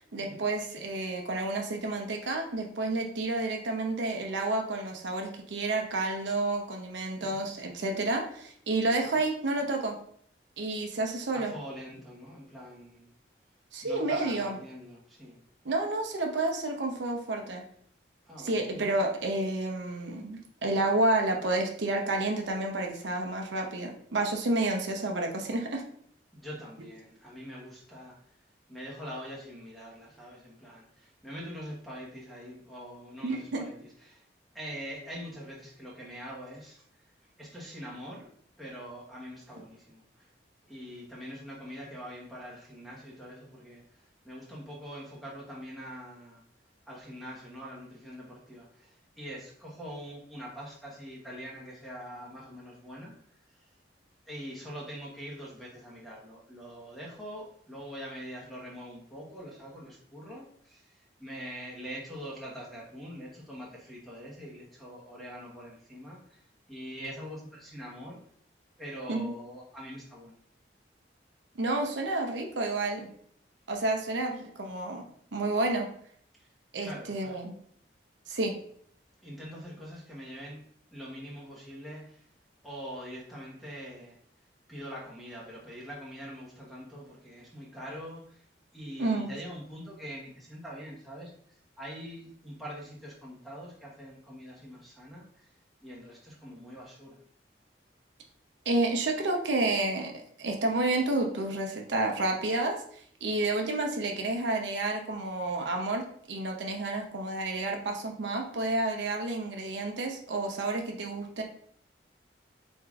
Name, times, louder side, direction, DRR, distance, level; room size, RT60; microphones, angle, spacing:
voice 1, 0.0-10.0 10.6-11.5 13.7-14.6 15.6-17.6 18.4-25.8 33.2-33.6 69.1-69.3 71.6-73.1 73.7-75.0 75.3-75.9 76.7-77.5 78.3-78.5 89.0-89.3 98.7-102.8 103.2-111.4, right 2 dB, 70° right, 2 dB, 0.7 m, -30 dB
voice 2, 11.3-13.1 13.8-15.4 18.3-18.7 26.3-28.2 28.7-34.2 34.5-36.8 37.4-38.3 38.6-40.3 40.7-46.4 46.9-53.1 53.5-53.6 54.3-68.2 68.8-70.4 76.4-76.5 76.8-77.3 79.2-80.6 80.9-82.3 82.6-84.2 84.7-88.4 88.7-91.3 91.8-95.5 95.8-97.2, equal, ahead, -5 dB, 1.0 m, -44 dB
4.8 x 3.6 x 2.4 m, 0.62 s
head